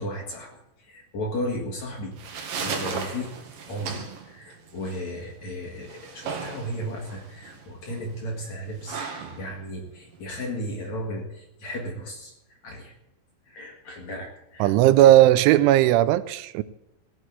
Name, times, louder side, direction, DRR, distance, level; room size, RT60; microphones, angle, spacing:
voice 1, 0.0-2.2 2.6-3.4 3.7-12.3 12.6-12.9 13.5-15.2, equal, 50° left, 2.4 m, -35 dB
sound 1, 1.9-10.9, right 5 dB, 70° right, 4.3 m, -37 dB
voice 2, 14.6-16.6, right 14 dB, 85° right, 3.0 m, -17 dB
16.5 x 7.9 x 8.1 m
omnidirectional pair, 5.4 m